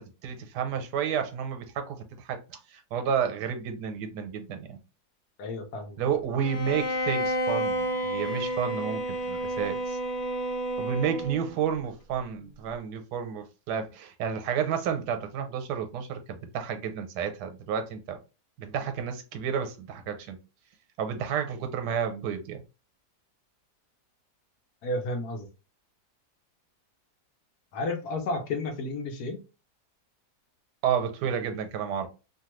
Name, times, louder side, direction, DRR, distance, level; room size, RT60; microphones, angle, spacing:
voice 1, 0.2-4.8 6.0-10.0 10.8-18.2 18.6-20.4 21.0-22.6 30.8-32.1, right 7 dB, 85° right, 1.2 m, -31 dB
voice 2, 5.4-6.0 24.8-25.5 27.7-29.4, left 2 dB, 70° left, 1.2 m, -32 dB
Bowed string instrument, 6.4-11.5, right 1 dB, 90° left, 1.3 m, -30 dB
3.0 x 2.3 x 2.9 m
omnidirectional pair, 1.8 m